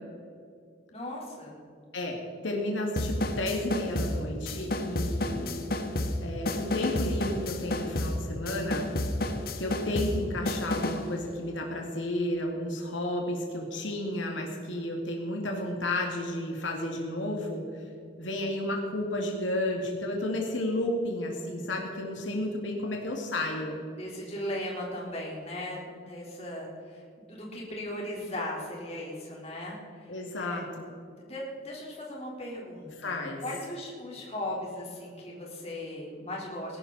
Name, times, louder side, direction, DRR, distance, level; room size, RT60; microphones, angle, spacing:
voice 1, 0.9-1.5 24.0-30.6 31.1-36.8, left 1 dB, 35° left, -3 dB, 3.9 m, -38 dB
voice 2, 2.4-5.6 6.2-8.9 9.5-17.8 18.2-23.8 30.1-30.8 33.0-33.4, left 1 dB, 85° left, 0 dB, 2.2 m, -32 dB
sound 1, 3.0-11.1, left 1 dB, 50° left, 1.2 m, -31 dB
20.5 x 12.0 x 4.2 m, 2.4 s
head